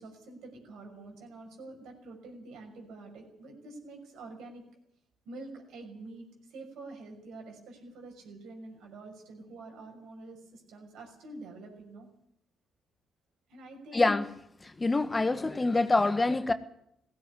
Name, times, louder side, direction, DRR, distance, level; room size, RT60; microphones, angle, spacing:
voice 1, 0.0-4.6 5.2-12.1 13.5-14.0, right 2 dB, 75° right, 3 dB, 6.1 m, -47 dB
voice 2, 13.9-14.3 14.6-16.5, left 2 dB, 25° left, 11 dB, 1.5 m, -26 dB
16.5 x 16.5 x 9.7 m, 0.75 s
hypercardioid pair, 55°, 0 cm